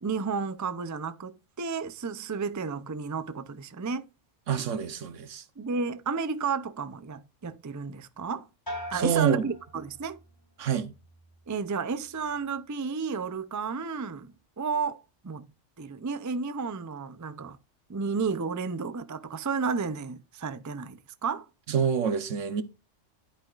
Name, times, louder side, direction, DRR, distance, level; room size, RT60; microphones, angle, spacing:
voice 1, 0.0-4.1 5.6-8.5 8.9-10.2 11.5-15.5 15.8-17.6 17.9-21.5, right 5 dB, 30° right, 0.3 m, -32 dB
voice 2, 4.5-5.4 8.9-9.4 10.6-10.9 21.7-22.6, right 7 dB, 80° right, 1.3 m, -27 dB
sound 1, 8.7-10.4 10.8-11.4, equal, 15° left, 4.0 m, -42 dB
10.5 x 9.0 x 2.5 m
omnidirectional pair, 1.3 m